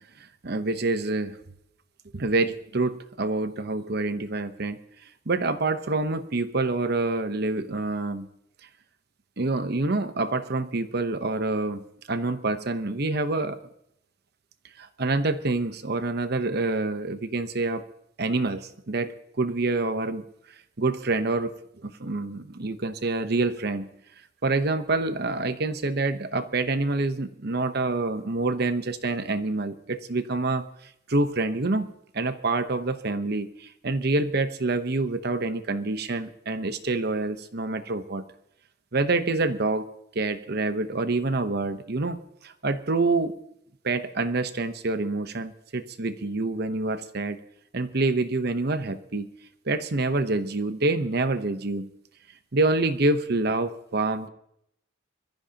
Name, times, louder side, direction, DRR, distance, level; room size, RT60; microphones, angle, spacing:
voice 1, 0.4-1.4 2.1-4.8 5.3-8.3 9.4-13.6 14.8-17.8 18.2-20.2 20.8-21.5 21.8-23.9 24.4-30.6 31.1-38.2 38.9-39.9 40.1-43.3 43.8-47.4 47.7-49.3 49.7-51.9 52.5-54.3, right 3 dB, 55° right, 10 dB, 0.9 m, -27 dB
22.5 x 14.0 x 2.9 m, 0.75 s
head